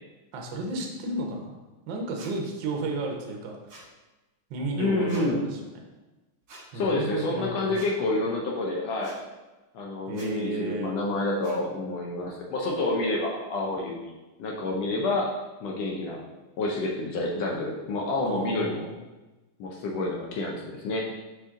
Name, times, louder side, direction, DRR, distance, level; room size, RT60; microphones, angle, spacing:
voice 1, 0.3-1.6 1.9-3.5 4.5-5.6 6.7-7.8 10.1-11.0 18.2-19.0, right 2 dB, 70° right, 1 dB, 1.0 m, -32 dB
sound 1, 2.2-2.3 3.7-3.9 5.1-5.3 6.5-6.6 7.7-7.9 9.0-9.2 10.1-10.3 11.4-11.6, right 2 dB, 45° right, 1.4 m, -46 dB
voice 2, 4.7-5.5 6.7-9.2 9.7-14.1 14.4-15.3 15.6-16.2 16.6-18.9 19.6-21.1, left 2 dB, 70° left, -1 dB, 1.7 m, -28 dB
5.3 x 5.0 x 3.7 m, 1.1 s
omnidirectional pair, 3.4 m